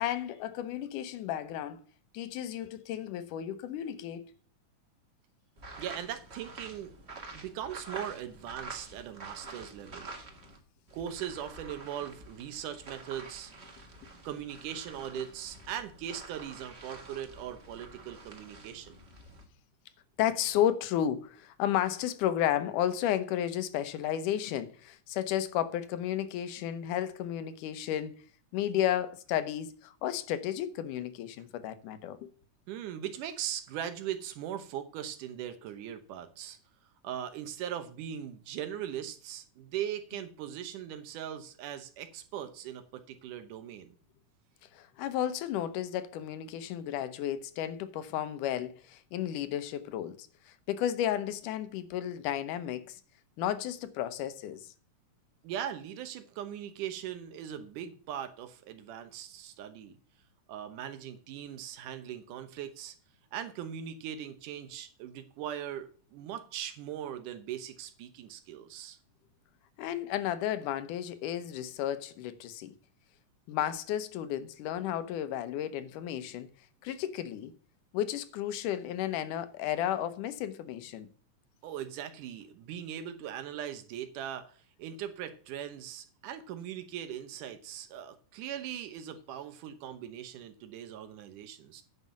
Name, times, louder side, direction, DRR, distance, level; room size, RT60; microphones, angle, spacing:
voice 1, 0.0-1.8 2.1-4.3 20.2-28.2 28.5-32.3 44.7-53.0 53.4-54.7 69.8-72.7 73.5-76.5 76.8-77.5 77.9-81.1, left 11 dB, 85° left, 2.4 m, -33 dB
sound 1, 5.6-10.6 10.9-19.4, right 3 dB, 30° right, 1.2 m, -48 dB
voice 2, 5.8-6.9 7.3-10.2 10.9-13.5 14.2-19.0 32.7-36.6 37.0-44.0 55.4-60.0 60.5-63.0 63.3-69.0 81.6-91.8, right 10 dB, 85° right, 2.6 m, -40 dB
9.6 x 5.5 x 7.3 m
omnidirectional pair, 3.6 m